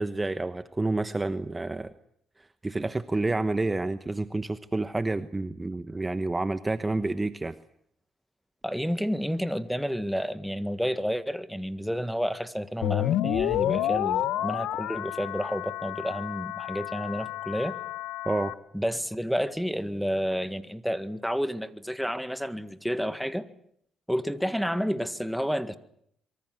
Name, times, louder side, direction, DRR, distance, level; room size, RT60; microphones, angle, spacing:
voice 1, 0.0-1.9 2.6-7.5 18.2-18.5, right 2 dB, 20° right, 1.1 m, -29 dB
voice 2, 8.6-17.8 18.7-23.5 24.1-25.8, equal, ahead, 1.8 m, -30 dB
sound 1, 12.8-18.5, left 13 dB, 90° left, 1.1 m, -30 dB
26.0 x 23.5 x 7.9 m
cardioid pair, 90°, 0 cm